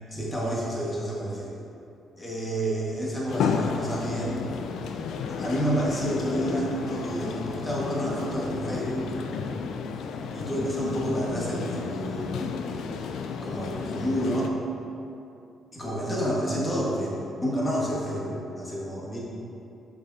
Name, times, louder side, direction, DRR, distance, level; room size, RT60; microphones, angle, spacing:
voice 1, 0.1-1.5 2.2-4.4 5.4-9.2 10.3-12.3 13.4-14.6 15.7-19.2, equal, 20° left, -5 dB, 1.5 m, -29 dB
sound 1, 3.3-14.5, left 5 dB, 80° left, 0.3 m, -32 dB
6.6 x 5.6 x 2.7 m, 2.6 s
cardioid pair, 90°, 0 cm